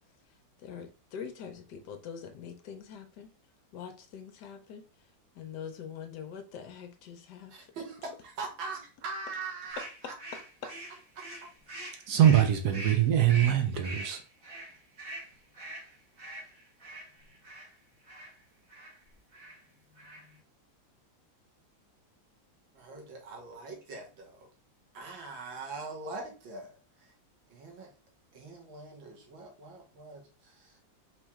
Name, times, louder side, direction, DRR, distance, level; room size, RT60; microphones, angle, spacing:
voice 1, 0.3-3.3 3.7-4.8 5.3-7.5, left 7 dB, 70° left, 7 dB, 1.1 m, -44 dB
voice 2, 7.5-10.1 11.2-11.5 22.7-24.5 24.9-27.1 27.5-27.9 28.3-30.8, right 3 dB, 85° right, 1 dB, 2.0 m, -42 dB
sound 1, 9.7-17.7 18.1-18.3 18.7-19.0 19.3-19.6 19.9-20.4, right 1 dB, 30° right, 1.5 m, -43 dB
voice 3, 12.1-14.2, right 10 dB, 65° right, 6 dB, 1.1 m, -23 dB
4.4 x 3.0 x 3.5 m, 0.35 s
omnidirectional pair, 2.1 m